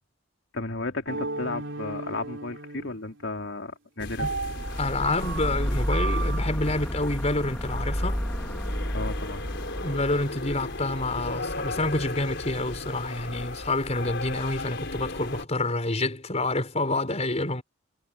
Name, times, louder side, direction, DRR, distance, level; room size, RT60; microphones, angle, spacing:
voice 1, 0.5-4.3 8.9-9.4, left 2 dB, 80° left, 3.2 m, -34 dB
sound 1, 1.1-3.4 4.2-6.4, right 3 dB, 75° right, 3.8 m, -35 dB
sound 2, 4.0-15.4, left 2 dB, 65° left, 5.4 m, -36 dB
sound 3, 4.4-12.8, equal, 5° left, 3.5 m, -32 dB
voice 2, 4.8-8.3 9.8-17.6, left 2 dB, 35° left, 5.3 m, -28 dB
head